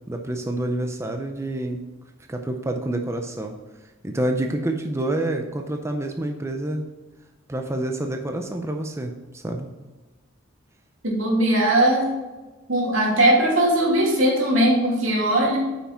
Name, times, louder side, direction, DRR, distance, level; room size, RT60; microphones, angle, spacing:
voice 1, 0.1-1.8 2.3-3.5 4.0-6.9 7.5-9.7, right 1 dB, 15° right, 4 dB, 0.6 m, -27 dB
voice 2, 11.0-12.1 12.7-15.6, right 1 dB, 85° right, -2 dB, 2.6 m, -19 dB
8.5 x 5.8 x 4.4 m, 1.2 s
head